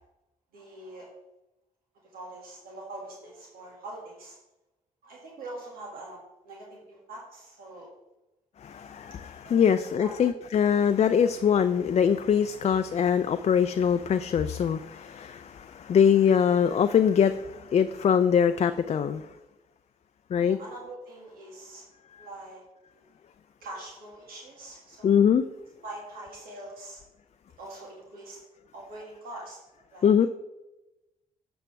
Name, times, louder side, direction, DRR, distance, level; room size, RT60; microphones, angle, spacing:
voice 1, 0.5-1.1 2.1-4.4 5.0-7.9 9.4-10.1 20.4-21.8 22.2-22.6 22.9-23.1 23.6-25.2 25.8-27.0 27.6-28.4 28.7-29.6 29.9-30.3, right 2 dB, 80° right, -3 dB, 2.1 m, -43 dB
voice 2, 8.6-19.2 20.3-20.6 25.0-25.4 30.0-30.3, left 7 dB, 45° left, 10 dB, 0.4 m, -23 dB
7.5 x 7.0 x 3.3 m, 0.97 s
supercardioid pair, 60°, 15 cm